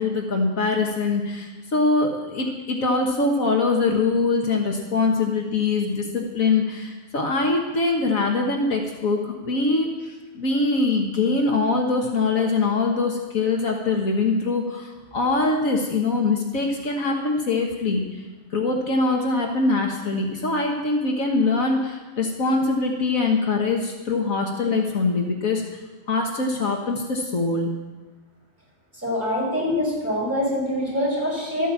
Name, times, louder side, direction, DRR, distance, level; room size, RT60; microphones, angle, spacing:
voice 1, 0.0-18.0 18.5-25.6 26.1-27.7, left 3 dB, 70° left, 1 dB, 1.8 m, -23 dB
voice 2, 29.0-31.7, left 1 dB, 10° right, -5 dB, 6.0 m, -24 dB
13.0 x 9.3 x 7.4 m, 1.2 s
omnidirectional pair, 1.5 m